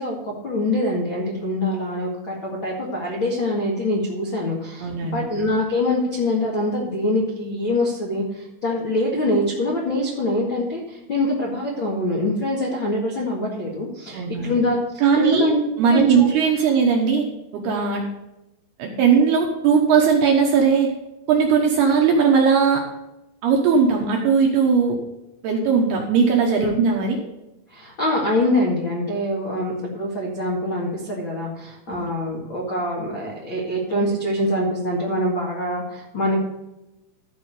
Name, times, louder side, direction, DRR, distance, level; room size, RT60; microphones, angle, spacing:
voice 1, 0.0-14.8 15.1-15.6 15.9-16.3 26.6-26.7 27.7-36.5, left 1 dB, 80° left, -3 dB, 1.1 m, -24 dB
voice 2, 4.8-5.3 14.1-14.6 15.0-15.5 15.8-17.3 17.5-18.1 18.8-20.9 21.3-22.8 23.4-25.0 25.4-27.2 31.9-32.0, right 6 dB, 70° right, 1 dB, 2.5 m, -18 dB
14.0 x 4.9 x 6.6 m, 0.96 s
omnidirectional pair, 6.0 m